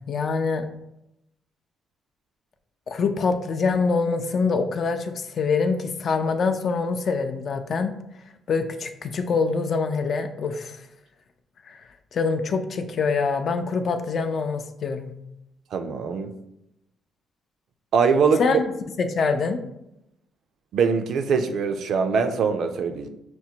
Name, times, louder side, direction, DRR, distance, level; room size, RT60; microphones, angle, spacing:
voice 1, 0.1-0.6 2.9-7.9 8.5-10.8 11.7-11.8 12.1-15.1 18.4-18.6 19.0-19.6, left 4 dB, 55° left, 7 dB, 0.4 m, -25 dB
voice 2, 15.7-16.3 17.9-18.4 20.7-23.1, right 5 dB, 70° right, 7 dB, 0.4 m, -22 dB
5.8 x 2.1 x 2.8 m, 0.85 s
cardioid pair, 90°, 0 cm